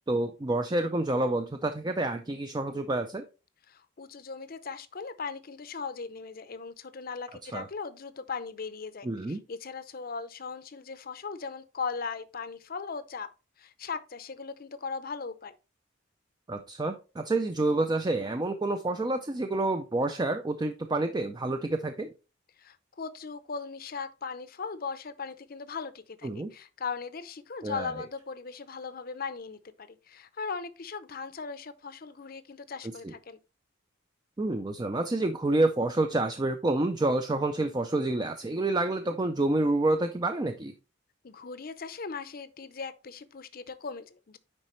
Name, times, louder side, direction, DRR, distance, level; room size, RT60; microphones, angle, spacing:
voice 1, 0.1-3.2 7.4-7.7 9.0-9.4 16.5-22.1 26.2-26.5 27.6-27.9 33.0-33.1 34.4-40.7, right 2 dB, 20° right, 0.4 m, -28 dB
voice 2, 3.7-13.3 13.6-15.5 22.6-33.4 41.2-44.4, left 5 dB, 50° left, 0.6 m, -38 dB
9.8 x 4.1 x 3.1 m
head